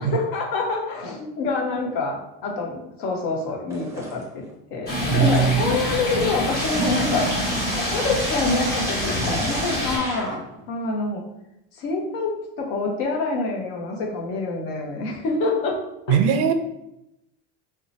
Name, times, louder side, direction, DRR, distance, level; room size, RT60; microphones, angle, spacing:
voice 1, 0.0-4.4 4.7-7.3 7.9-10.4 10.7-11.2 11.8-15.8 16.1-16.2, left 3 dB, 65° left, 1 dB, 0.9 m, -26 dB
sound 1, 3.7-4.5 4.9-10.7, right 1 dB, 10° right, 0.5 m, -34 dB
Stream, 4.9-10.0, left 1 dB, 30° left, 1.2 m, -25 dB
voice 2, 5.1-5.7 16.1-16.5, right 8 dB, 60° right, 8 dB, 0.4 m, -20 dB
2.7 x 2.2 x 3.9 m, 0.87 s
supercardioid pair, 150°, 31 cm